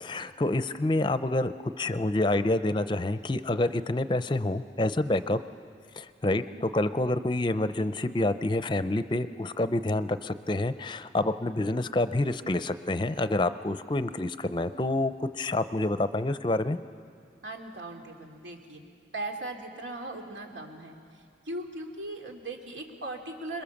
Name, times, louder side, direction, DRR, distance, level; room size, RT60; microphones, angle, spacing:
voice 1, 0.0-5.4 5.9-16.8, left 2 dB, 25° left, 12 dB, 0.5 m, -28 dB
voice 2, 6.3-6.6 17.4-18.8 19.1-23.6, right 2 dB, 90° right, 2 dB, 2.7 m, -39 dB
27.0 x 22.0 x 7.1 m, 2.3 s
head